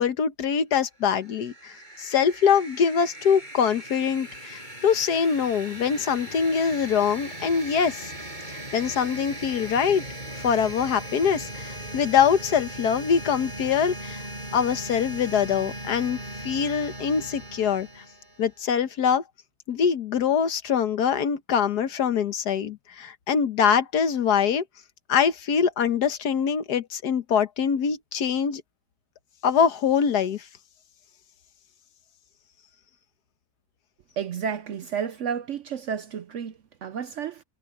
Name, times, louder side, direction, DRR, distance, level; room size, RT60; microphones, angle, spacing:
voice 1, 0.0-8.1 8.5-10.0 10.4-14.2 14.5-18.0 18.4-19.2 19.7-24.6 25.1-28.6 29.4-30.4, left 7 dB, 75° left, 1.6 m, -24 dB
sound 1, 1.0-18.6, right 1 dB, 25° right, 8.1 m, -39 dB
voice 2, 34.2-37.4, right 7 dB, 60° right, 0.8 m, -31 dB
omnidirectional pair, 1.7 m